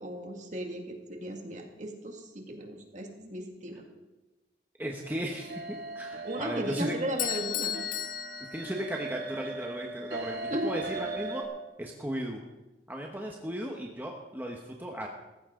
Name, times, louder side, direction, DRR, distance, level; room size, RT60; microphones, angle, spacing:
voice 1, 0.0-3.8 6.2-7.8 10.5-10.7, right 1 dB, 40° right, 2 dB, 2.2 m, -36 dB
voice 2, 4.8-6.9 8.5-11.4 11.8-12.4 12.9-15.1, equal, 10° right, 0 dB, 1.2 m, -36 dB
sound 1, 5.0-11.4, right 3 dB, 65° right, 2.7 m, -39 dB
Bell / Doorbell, 7.2-9.3, left 11 dB, 45° left, 0.6 m, -35 dB
17.0 x 15.0 x 3.8 m, 1.1 s
head